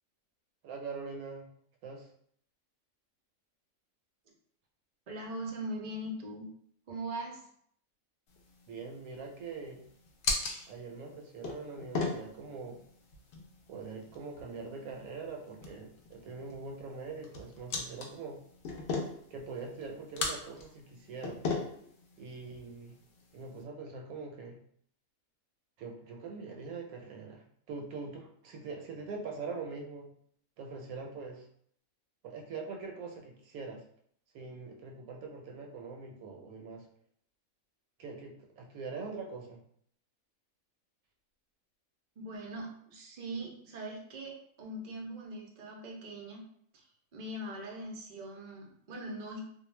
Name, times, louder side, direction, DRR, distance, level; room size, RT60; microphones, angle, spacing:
voice 1, 0.6-1.5 1.8-2.1 8.7-9.8 10.7-12.8 13.7-18.4 19.3-21.4 22.2-22.9 23.3-24.6 25.8-30.1 30.6-31.5 32.2-33.8 34.3-36.9 38.0-39.6, right 4 dB, 80° right, 1 dB, 1.0 m, -43 dB
voice 2, 5.1-6.5 6.9-7.5 42.2-46.4 46.7-46.8 47.1-49.4, right 1 dB, 60° right, 0 dB, 0.4 m, -41 dB
sound 1, 8.3-23.6, left 4 dB, 65° left, 0.6 m, -40 dB
2.4 x 2.1 x 3.1 m, 0.65 s
omnidirectional pair, 1.5 m